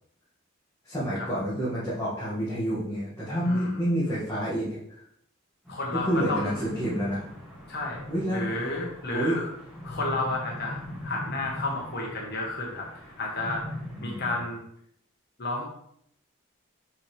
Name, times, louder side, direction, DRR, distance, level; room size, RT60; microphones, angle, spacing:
voice 1, 0.8-5.0 5.9-7.2 8.1-8.5 9.1-9.4 14.0-14.4, equal, 15° left, -10 dB, 2.1 m, -29 dB
voice 2, 3.4-3.8 5.7-6.6 7.7-8.0 8.3-9.5 9.8-12.9 13.2-13.6 14.0-14.6 15.4-15.6, left 2 dB, 55° left, -2 dB, 1.3 m, -31 dB
sound 1, 5.6-14.3, left 1 dB, ahead, 2.3 m, -41 dB
7.3 x 5.7 x 3.4 m, 0.72 s
head